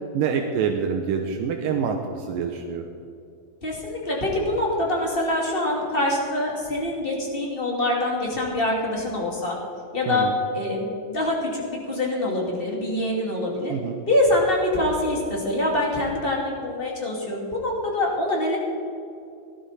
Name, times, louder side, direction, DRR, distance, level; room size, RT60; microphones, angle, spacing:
voice 1, 0.1-2.9 10.1-10.3 13.7-14.0, right 6 dB, 80° right, 3 dB, 2.4 m, -26 dB
voice 2, 3.6-9.6 9.9-10.3 10.5-13.7 14.1-18.6, left 1 dB, 20° left, -2 dB, 2.2 m, -25 dB
18.0 x 12.5 x 4.2 m, 2.5 s
omnidirectional pair, 4.1 m